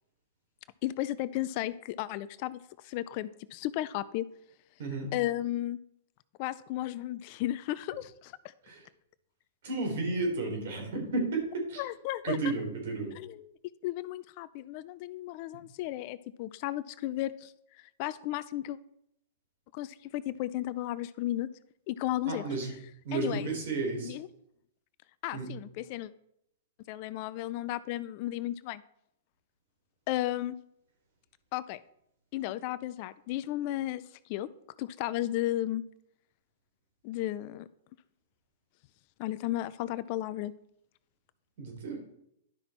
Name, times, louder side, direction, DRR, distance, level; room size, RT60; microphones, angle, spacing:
voice 1, 0.8-4.3 5.1-5.8 6.4-8.5 11.8-12.4 13.1-13.5 13.8-17.5 18.0-18.8 19.7-21.5 21.9-22.4 23.1-23.5 24.0-24.3 25.2-26.1 26.9-28.8 30.1-30.6 31.5-31.8 32.3-34.0 34.3-34.5 34.8-35.8 37.0-37.7 39.2-40.5, left 14 dB, 50° left, 17 dB, 0.5 m, -34 dB
voice 2, 4.8-5.1 8.6-8.8 9.6-11.8 12.2-13.1 22.3-22.7 23.0-24.1 25.3-25.5 41.6-42.0, right 3 dB, 65° right, 2 dB, 3.9 m, -32 dB
11.5 x 5.8 x 4.5 m, 0.75 s
hypercardioid pair, 115°, 0 cm